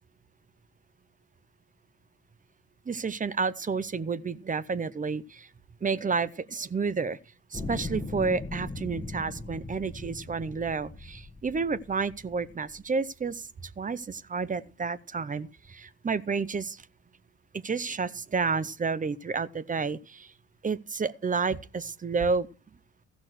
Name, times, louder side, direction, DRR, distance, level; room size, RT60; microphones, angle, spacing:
voice 1, 2.9-5.5 5.8-7.2 7.5-16.8 17.5-20.3 20.6-22.5, right 5 dB, 25° right, 0.7 m, -30 dB
sound 1, 7.5-12.8 13.5-13.6, left 2 dB, 15° left, 1.3 m, -39 dB
15.0 x 6.2 x 6.4 m
cardioid pair, 90°, 30 cm